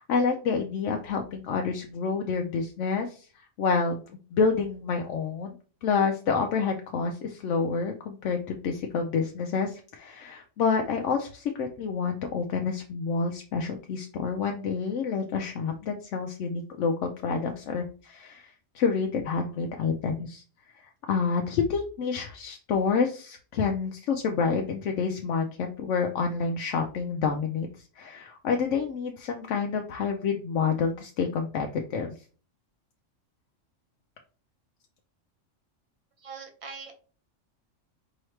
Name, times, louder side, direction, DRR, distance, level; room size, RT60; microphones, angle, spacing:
voice 1, 0.0-4.0 4.3-5.5 5.8-20.4 20.7-27.7 28.0-32.1, left 5 dB, 70° left, 3 dB, 0.9 m, -28 dB
voice 2, 36.2-36.9, right 5 dB, 30° right, 4 dB, 0.8 m, -42 dB
4.6 x 3.0 x 3.2 m, 0.38 s
omnidirectional pair, 1.3 m